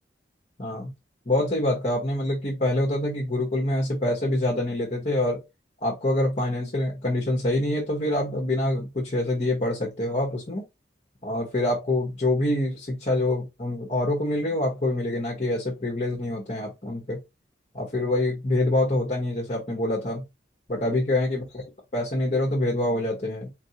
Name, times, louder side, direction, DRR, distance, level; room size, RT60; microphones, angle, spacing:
voice 1, 0.6-0.9 1.3-5.4 5.8-10.6 11.2-17.2 17.7-20.2 20.7-21.6 21.9-23.5, left 1 dB, 40° left, 1.0 m, -26 dB
4.0 x 2.6 x 2.8 m
head